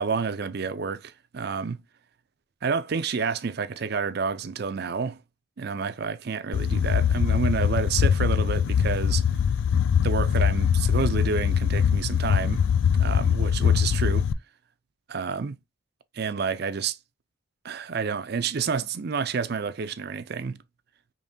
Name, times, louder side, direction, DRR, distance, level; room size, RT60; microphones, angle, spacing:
voice 1, 0.0-1.8 2.6-5.2 5.6-9.2 10.0-12.6 13.0-14.3 15.1-15.6 16.1-17.0 17.6-20.6, right 5 dB, 55° right, 0.5 m, -29 dB
sound 1, 6.5-14.3, left 7 dB, 85° left, 0.3 m, -22 dB
5.1 x 3.1 x 2.6 m
head